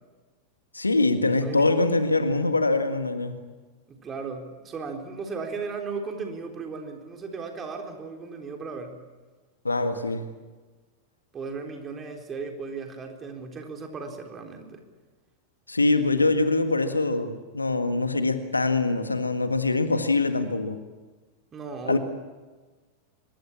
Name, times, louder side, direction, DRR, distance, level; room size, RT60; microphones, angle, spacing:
voice 1, 0.7-3.4 9.6-10.3 15.7-20.8 21.9-22.0, left 3 dB, 80° left, 8 dB, 1.8 m, -23 dB
voice 2, 3.9-9.0 11.3-14.8 21.5-22.0, right 4 dB, 25° right, 3 dB, 3.9 m, -36 dB
24.5 x 22.0 x 7.3 m, 1.3 s
figure-of-eight pair, 90°, 0 cm